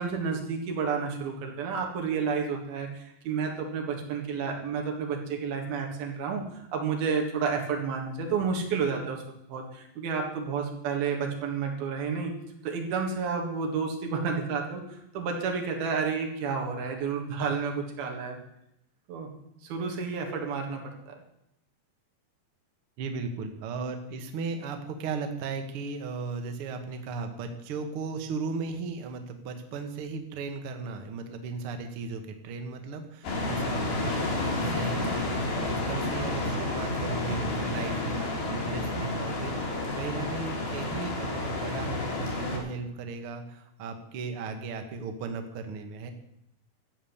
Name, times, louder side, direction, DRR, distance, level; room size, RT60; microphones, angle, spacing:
voice 1, 0.0-9.2 9.5-12.4 12.6-18.4 19.1-19.3 19.6-21.2 40.1-40.3, right 5 dB, 90° right, 1 dB, 3.9 m, -31 dB
voice 2, 23.0-39.5 40.0-46.1, right 4 dB, 55° right, 6 dB, 1.6 m, -36 dB
sound 1, 33.2-42.6, left 2 dB, 80° left, 4.9 m, -30 dB
12.5 x 8.2 x 7.2 m, 0.80 s
omnidirectional pair, 4.2 m